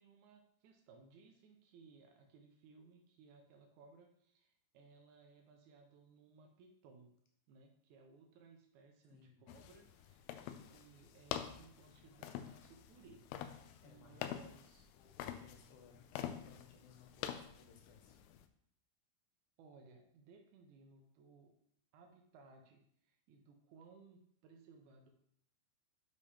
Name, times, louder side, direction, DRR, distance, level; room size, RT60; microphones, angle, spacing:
voice 1, 0.0-7.1 7.5-13.2 13.6-14.9 19.6-21.6 21.9-25.1, right 4 dB, 85° right, 3 dB, 1.7 m, -62 dB
voice 2, 9.1-9.4 13.8-14.4 14.9-18.2, left 6 dB, 70° left, 2 dB, 2.1 m, -62 dB
sound 1, 9.5-18.4, left 10 dB, 85° left, 2.5 m, -47 dB
6.8 x 5.3 x 3.3 m, 0.69 s
omnidirectional pair, 4.4 m